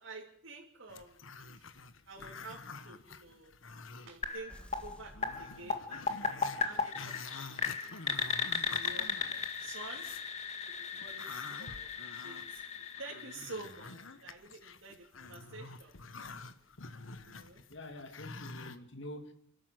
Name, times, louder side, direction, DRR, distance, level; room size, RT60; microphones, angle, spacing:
voice 1, 0.0-1.7 2.1-3.5 4.0-8.2 8.6-10.0 10.6-11.9 12.2-15.9 16.9-17.6, right 3 dB, 80° right, 2.9 m, -50 dB
Growling, 0.9-4.4 4.8-4.9 5.2-10.3 10.7-18.8, left 4 dB, 85° left, 1.3 m, -48 dB
sound 1, 4.2-14.0, left 5 dB, 35° left, 1.9 m, -37 dB
sound 2, 4.5-6.4, equal, 5° left, 1.7 m, -55 dB
voice 2, 17.7-19.3, left 1 dB, 65° left, 2.5 m, -46 dB
29.0 x 13.0 x 7.8 m
head